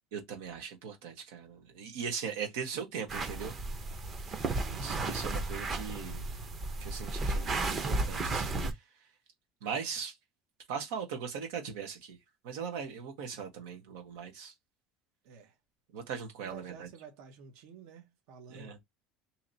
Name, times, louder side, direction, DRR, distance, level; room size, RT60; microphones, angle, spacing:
voice 1, 0.1-3.5 4.8-6.2 6.8-8.5 9.6-10.1 10.7-12.2 12.4-14.5 15.9-16.9 18.5-18.8, right 6 dB, 90° right, 1.1 m, -39 dB
voice 2, 2.4-2.9 4.6-5.1 15.2-15.6 16.4-18.7, right 5 dB, 70° right, 1.1 m, -51 dB
sound 1, 3.1-8.7, right 2 dB, 25° right, 0.7 m, -34 dB
2.9 x 2.9 x 3.9 m
cardioid pair, 155°, 0 cm